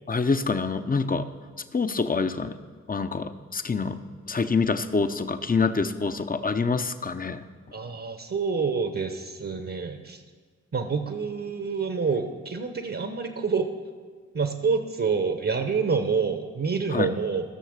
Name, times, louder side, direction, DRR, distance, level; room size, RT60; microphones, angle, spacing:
voice 1, 0.1-1.3 1.7-2.6 2.9-4.0 4.3-7.4 16.9-17.1, left 4 dB, 30° left, 10 dB, 0.8 m, -26 dB
voice 2, 7.7-10.2 10.7-13.7 14.3-17.4, right 5 dB, 50° right, 6 dB, 1.1 m, -27 dB
14.0 x 6.5 x 6.5 m, 1.5 s
cardioid pair, 45°, 30 cm